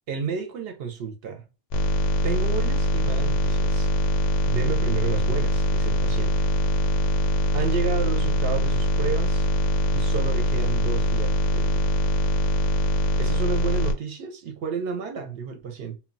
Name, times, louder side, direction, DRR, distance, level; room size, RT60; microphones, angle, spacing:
voice 1, 0.1-1.4 2.2-3.9 4.5-6.3 7.5-9.4 9.9-11.9 13.2-16.0, right 6 dB, 65° right, 0.7 m, -31 dB
sound 1, 1.7-13.9, equal, 90° left, 0.9 m, -23 dB
2.2 x 2.1 x 3.8 m
omnidirectional pair, 1.2 m